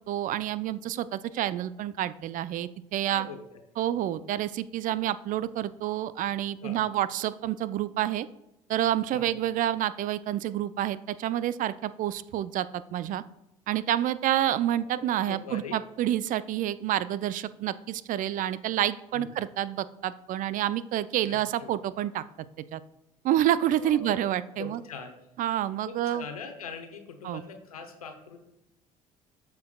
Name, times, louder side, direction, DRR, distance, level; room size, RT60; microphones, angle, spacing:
voice 1, 0.1-3.3 3.8-8.3 8.7-13.2 13.7-22.2 22.7-22.8 23.2-24.8 25.4-26.3 27.2-27.4, right 12 dB, 50° right, 16 dB, 0.4 m, -28 dB
voice 2, 3.0-3.6 6.6-6.8 9.1-9.2 14.8-15.8 19.1-19.3 21.2-21.7 23.8-24.3 24.6-25.2 25.9-28.4, left 5 dB, 90° left, 6 dB, 0.8 m, -42 dB
13.0 x 4.6 x 2.3 m, 0.90 s
hypercardioid pair, 60°, 18 cm